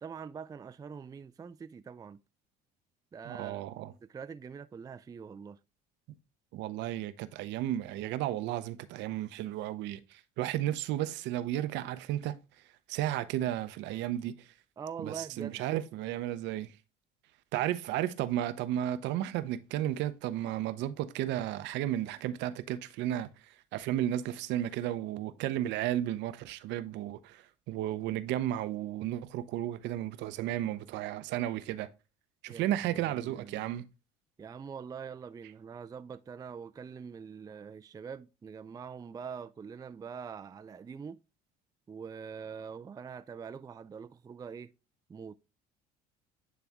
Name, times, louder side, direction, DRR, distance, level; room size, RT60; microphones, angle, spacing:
voice 1, 0.0-2.2 3.1-3.6 4.1-5.6 14.8-15.6 32.5-33.7 34.4-41.2 41.9-44.7 45.1-45.4, right 6 dB, 20° right, 0.4 m, -44 dB
voice 2, 3.3-3.9 6.1-6.2 6.5-12.3 12.9-14.3 15.1-16.7 17.5-23.3 23.7-31.9 32.4-33.8, right 13 dB, 65° right, 0.7 m, -33 dB
9.4 x 3.4 x 3.5 m
hypercardioid pair, 70°, 20 cm